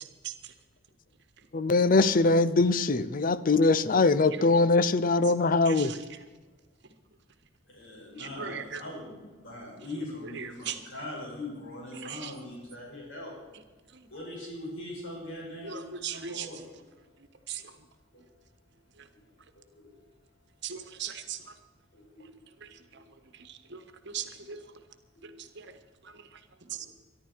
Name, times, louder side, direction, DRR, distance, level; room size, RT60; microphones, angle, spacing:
voice 1, 1.5-5.9, left 3 dB, 45° left, 15 dB, 0.6 m, -22 dB
voice 2, 5.6-6.0 8.2-8.8 10.4-10.8 12.0-12.3 15.6-16.5 17.5-17.6 20.6-21.4 23.7-23.8 24.1-24.6 25.6-25.7 26.7-26.9, right 8 dB, 60° right, 8 dB, 1.3 m, -37 dB
voice 3, 7.7-13.3 14.1-15.8 16.1-16.9 18.1-18.2 19.1-19.9 21.9-23.0 25.1-25.7 26.6-26.9, left 1 dB, 75° left, -3 dB, 6.1 m, -42 dB
23.5 x 11.5 x 4.6 m, 1.2 s
head